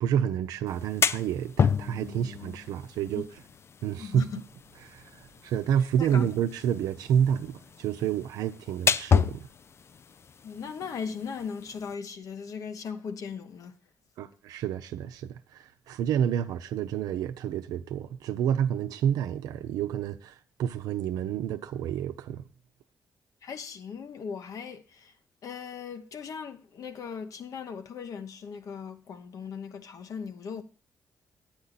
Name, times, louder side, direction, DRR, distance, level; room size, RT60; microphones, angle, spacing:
voice 1, 0.0-3.2 3.8-4.3 4.9-5.0 5.4-9.5 14.2-20.3 20.6-22.4, right 9 dB, 90° right, 0.7 m, -29 dB
sound 1, 0.7-11.9, left 6 dB, 45° left, 0.4 m, -31 dB
voice 2, 3.9-4.3 6.0-6.3 10.4-13.7 23.4-25.1 25.4-30.6, left 6 dB, 65° left, 1.1 m, -38 dB
10.5 x 8.8 x 4.0 m
cardioid pair, 70°, 6 cm